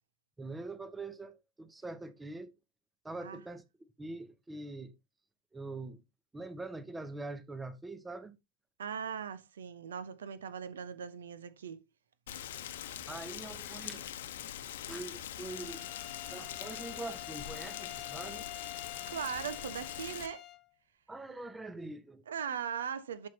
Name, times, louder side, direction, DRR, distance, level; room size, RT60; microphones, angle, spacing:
voice 1, 0.4-2.5 3.0-3.6 4.0-4.9 5.5-6.0 6.3-8.4 12.5-12.7 13.1-14.0 14.9-15.8 16.3-18.5 21.1-22.2, right 2 dB, 10° right, 0.9 m, -43 dB
voice 2, 8.8-11.8 19.1-20.4 22.3-23.3, right 7 dB, 65° right, 0.9 m, -39 dB
Rain, 12.3-20.3, left 11 dB, 55° left, 1.0 m, -43 dB
Bowed string instrument, 15.4-20.7, left 15 dB, 35° left, 0.6 m, -47 dB
12.0 x 5.8 x 2.9 m
figure-of-eight pair, 90°, 0 cm